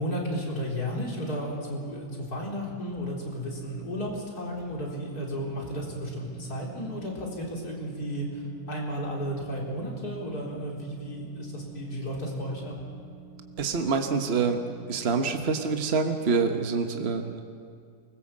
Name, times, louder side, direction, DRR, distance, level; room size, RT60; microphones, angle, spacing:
voice 1, 0.0-8.4 8.7-12.7, equal, 80° left, -2 dB, 4.5 m, -33 dB
sound 1, 2.9-4.1 4.6-15.4, right 5 dB, 15° left, 4.0 m, -48 dB
voice 2, 13.6-14.6 14.9-17.4, right 5 dB, 45° right, 5 dB, 1.4 m, -26 dB
24.5 x 20.5 x 7.5 m, 2.2 s
omnidirectional pair, 1.6 m